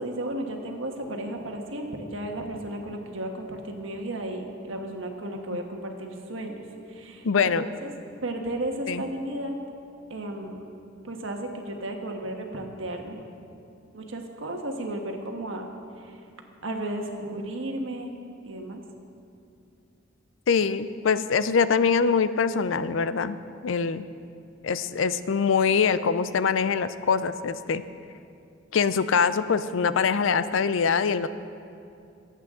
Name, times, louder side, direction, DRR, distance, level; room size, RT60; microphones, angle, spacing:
voice 1, 0.0-6.6 6.9-7.3 7.6-7.9 8.2-9.5 10.1-10.6 11.0-13.2 13.9-15.7 16.0-16.2 16.6-18.1 18.4-18.8, right 1 dB, 70° right, 3 dB, 1.4 m, -34 dB
voice 2, 7.2-7.6 8.9-9.0 20.5-23.4 23.6-24.0 24.6-27.8 28.7-31.3, left 6 dB, 70° left, 13 dB, 0.5 m, -23 dB
23.0 x 8.3 x 3.7 m, 2.6 s
head